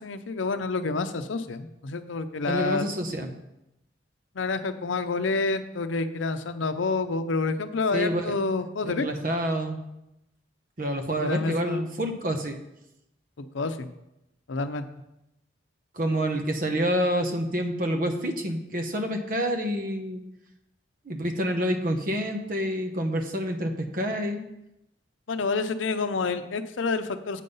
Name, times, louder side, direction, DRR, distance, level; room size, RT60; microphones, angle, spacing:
voice 1, 0.0-2.9 4.3-9.1 11.2-12.0 13.4-13.9 14.5-14.8 25.3-27.4, left 3 dB, 85° left, 10 dB, 0.6 m, -28 dB
voice 2, 2.5-3.3 7.9-8.3 8.8-9.8 10.8-12.6 15.9-20.2 21.1-24.4, equal, 45° right, 5 dB, 0.9 m, -28 dB
8.3 x 5.4 x 5.4 m, 0.88 s
head